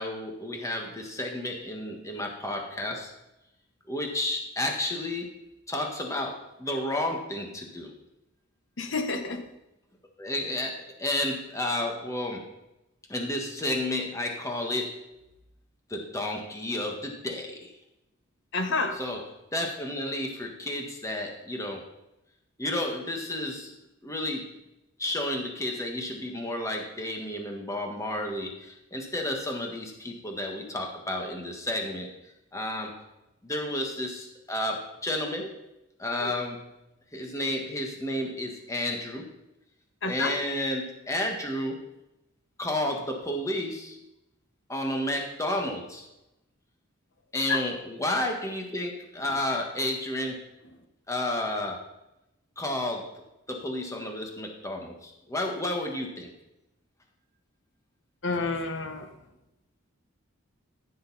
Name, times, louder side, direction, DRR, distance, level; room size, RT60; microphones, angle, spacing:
voice 1, 0.0-3.1 3.9-5.3 5.7-7.9 10.2-12.4 13.1-14.9 15.9-17.7 18.9-19.2 19.5-21.8 22.6-23.7 24.0-24.5 25.0-32.1 32.5-33.0 33.4-35.5 36.0-36.7 37.1-39.3 40.0-41.8 42.6-44.0 44.7-46.1 47.3-50.4 51.1-51.8 52.6-53.1 53.5-56.3, left 1 dB, 15° left, 2 dB, 1.6 m, -31 dB
voice 2, 8.8-9.4 18.5-19.0 36.2-36.3 40.0-40.3 47.5-47.6 58.2-59.1, left 3 dB, 65° left, 6 dB, 1.3 m, -29 dB
15.0 x 6.6 x 4.2 m, 0.90 s
head